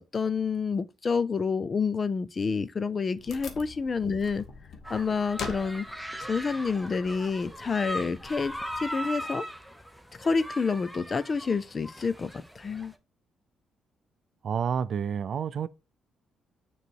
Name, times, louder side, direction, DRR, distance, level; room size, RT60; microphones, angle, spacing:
voice 1, 0.0-4.5 4.9-5.9 6.2-9.4 10.2-12.3 12.6-12.9, left 5 dB, 35° left, 0.5 m, -28 dB
Wood, 3.2-8.9, left 5 dB, 60° left, 1.2 m, -44 dB
sound 1, 4.8-13.0, equal, ahead, 0.8 m, -39 dB
voice 2, 14.4-15.7, right 7 dB, 55° right, 0.4 m, -29 dB
6.6 x 3.1 x 4.6 m
cardioid pair, 90°, 0 cm